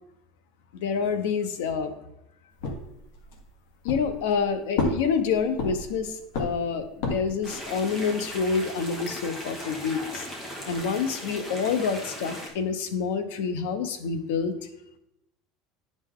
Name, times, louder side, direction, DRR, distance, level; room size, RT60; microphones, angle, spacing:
voice 1, 0.7-1.9 3.8-10.3 10.7-14.5, left 6 dB, 85° left, 9 dB, 0.9 m, -27 dB
sound 1, 2.6-3.5 3.9-4.4 4.8-6.0 6.3-7.4, left 2 dB, 65° left, 1.5 m, -30 dB
sound 2, 7.4-12.5, equal, 15° left, 1.3 m, -38 dB
9.6 x 5.2 x 3.7 m, 0.86 s
cardioid pair, 175°, 0 cm